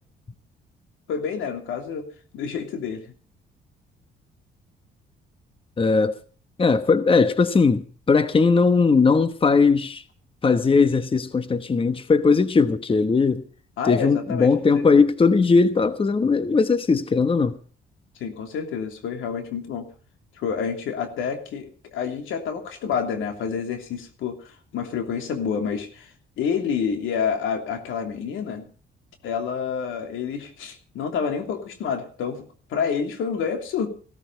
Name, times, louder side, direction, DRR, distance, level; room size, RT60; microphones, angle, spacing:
voice 1, 1.1-2.1 2.3-3.1 13.8-14.8 18.2-19.9 20.4-28.7 29.2-32.4 32.7-33.9, left 6 dB, 85° left, 3.0 m, -28 dB
voice 2, 5.8-6.2 6.6-10.0 10.4-13.4 13.8-17.6, left 4 dB, 25° left, 1.1 m, -19 dB
16.0 x 14.0 x 5.2 m
cardioid pair, 90°, 20 cm